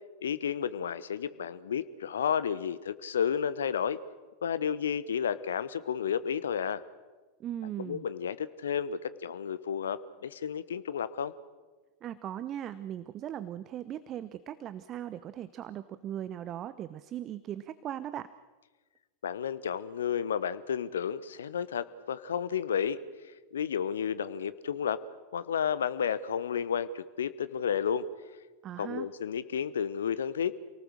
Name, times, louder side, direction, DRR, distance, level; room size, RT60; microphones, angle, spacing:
voice 1, 0.2-4.0 4.4-6.8 7.8-11.3 19.2-23.0 23.5-25.0 25.3-28.1 28.8-30.6, left 8 dB, 65° left, 15 dB, 1.0 m, -32 dB
voice 2, 7.4-8.1 12.0-18.3 28.6-29.1, right 11 dB, 30° right, 14 dB, 0.8 m, -38 dB
28.5 x 19.0 x 6.6 m, 1.3 s
figure-of-eight pair, 90°, 0 cm